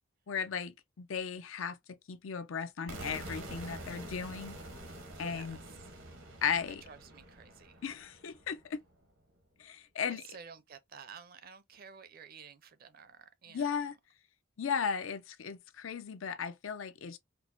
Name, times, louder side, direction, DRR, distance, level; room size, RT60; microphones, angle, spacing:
voice 1, 0.3-1.8 2.1-4.6 5.2-5.6 6.4-6.8 7.8-8.8 9.6-10.2 13.5-13.9 14.6-17.2, left 6 dB, 85° left, 0.5 m, -36 dB
sound 1, 2.9-8.8, right 1 dB, 80° right, 1.0 m, -46 dB
voice 2, 5.1-6.0 6.7-7.8 10.1-13.9, right 6 dB, 50° right, 0.5 m, -52 dB
4.4 x 2.0 x 2.6 m
head